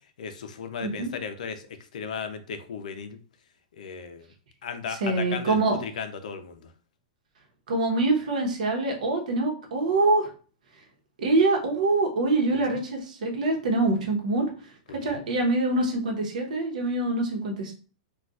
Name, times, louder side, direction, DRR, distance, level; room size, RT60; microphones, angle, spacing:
voice 1, 0.2-1.7 1.9-3.2 3.7-4.3 4.6-6.7 12.5-12.8 14.9-15.2, left 6 dB, 75° left, 9 dB, 0.5 m, -36 dB
voice 2, 0.8-1.1 4.9-5.8 7.7-10.3 11.2-14.5 15.0-17.7, right 2 dB, 80° right, 1 dB, 1.0 m, -25 dB
3.9 x 2.4 x 2.4 m, 0.39 s
supercardioid pair, 160°, 4 cm